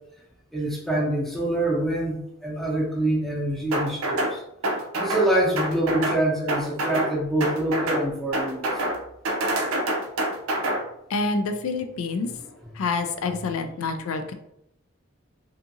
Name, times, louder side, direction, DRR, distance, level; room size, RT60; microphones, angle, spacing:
voice 1, 0.5-4.4 4.9-8.8, right 1 dB, ahead, -5 dB, 0.6 m, -25 dB
sound 1, 3.7-4.3 4.6-5.3 5.6-6.2 6.5-7.1 7.4-8.0 8.3-9.0 9.2-10.8, right 1 dB, 90° right, 0.5 m, -26 dB
voice 2, 11.1-12.3 12.8-14.3, left 3 dB, 80° left, 7 dB, 0.3 m, -27 dB
2.7 x 2.5 x 2.6 m, 0.77 s
head